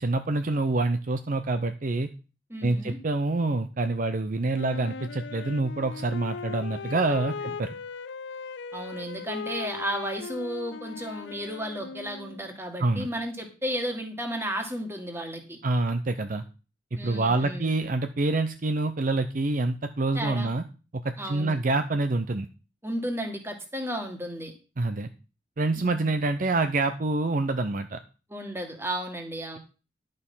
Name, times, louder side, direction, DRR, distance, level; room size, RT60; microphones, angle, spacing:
voice 1, 0.0-2.1 2.6-7.7 12.8-13.1 15.6-16.4 17.0-20.6 21.0-22.5 24.8-25.1 25.6-28.0, right 2 dB, 45° right, 9 dB, 0.6 m, -26 dB
voice 2, 2.5-3.0 7.0-7.2 8.7-15.6 17.0-17.8 20.1-20.5 21.2-21.6 22.8-24.5 25.8-26.2 28.3-29.6, right 1 dB, 15° right, 4 dB, 1.9 m, -33 dB
Wind instrument woodwind instrument, 4.5-12.5, left 5 dB, 70° left, 0.4 m, -38 dB
11.0 x 6.6 x 5.6 m, 0.34 s
head